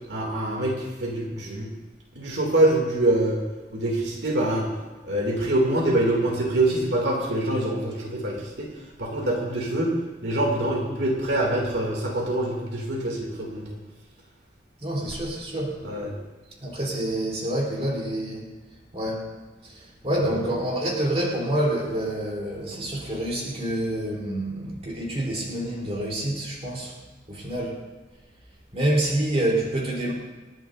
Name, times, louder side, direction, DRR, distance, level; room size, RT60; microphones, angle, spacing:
voice 1, 0.1-1.7 2.1-3.4 3.7-4.7 5.0-8.7 9.0-13.6 15.8-16.1, right 1 dB, 85° right, -1 dB, 2.7 m, -25 dB
voice 2, 14.8-15.8 16.6-18.5 18.9-19.3 19.6-27.0 27.3-27.8 28.7-30.1, right 1 dB, 35° right, -3 dB, 3.7 m, -27 dB
28.0 x 10.5 x 2.7 m, 1.2 s
head